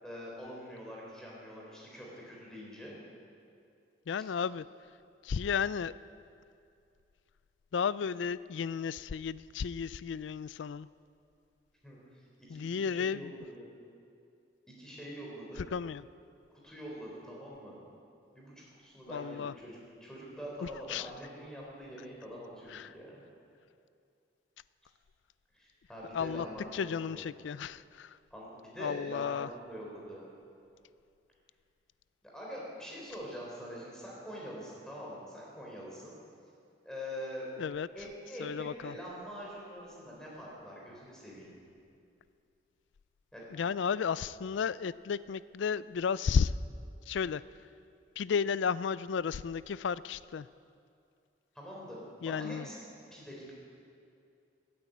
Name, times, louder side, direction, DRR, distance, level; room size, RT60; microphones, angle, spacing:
voice 1, 0.0-2.9 11.8-12.2 12.5-13.7 14.7-15.6 16.6-17.8 18.3-18.5 18.8-23.2 25.5-27.2 28.3-30.2 32.2-36.1 36.8-37.5 37.9-41.5 43.3-43.4 51.5-52.8 53.1-53.5, equal, 5° left, -4 dB, 4.0 m, -44 dB
voice 2, 4.1-4.6 5.2-5.9 7.7-10.9 12.5-13.4 15.7-16.0 19.1-19.5 20.6-21.1 22.7-22.9 26.1-26.5 26.7-28.2 28.8-29.5 37.6-37.9 38.4-38.9 43.5-46.5 47.1-47.4 48.2-50.5 52.2-52.7, left 6 dB, 85° left, 18 dB, 0.4 m, -33 dB
14.5 x 9.6 x 9.1 m, 2.5 s
head